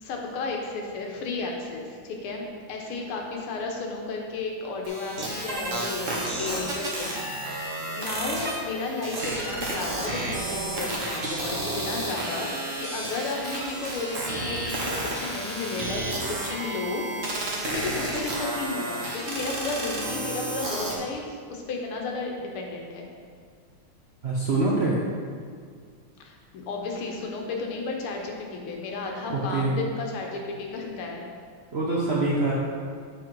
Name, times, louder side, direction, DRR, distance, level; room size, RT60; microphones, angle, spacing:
voice 1, 0.0-7.2 8.0-16.0 16.4-17.0 17.6-23.1 26.2-26.4 26.7-31.3, left 3 dB, 90° left, 1 dB, 1.8 m, -33 dB
sound 1, 4.8-20.9, right 1 dB, 45° right, 1.3 m, -31 dB
voice 2, 24.2-24.9 29.3-29.7 31.7-32.5, right 2 dB, 85° right, -5 dB, 0.5 m, -24 dB
7.8 x 4.7 x 4.5 m, 2.1 s
omnidirectional pair, 2.3 m